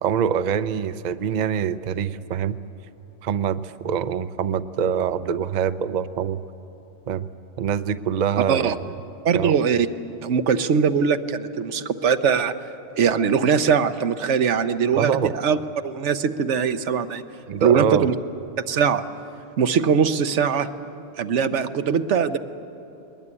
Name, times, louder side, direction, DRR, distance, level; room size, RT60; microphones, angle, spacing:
voice 1, 0.0-2.6 3.2-6.4 7.1-7.3 7.6-8.9 9.3-9.6 14.9-15.3 17.5-18.1, right 8 dB, 50° right, 12 dB, 0.6 m, -24 dB
voice 2, 9.2-9.9 10.2-12.5 13.0-15.6 15.8-17.2 17.6-18.1 18.7-19.0 19.6-20.7 21.2-22.4, right 6 dB, 75° right, 10 dB, 1.1 m, -21 dB
20.5 x 20.0 x 9.7 m, 3.0 s
omnidirectional pair, 1.2 m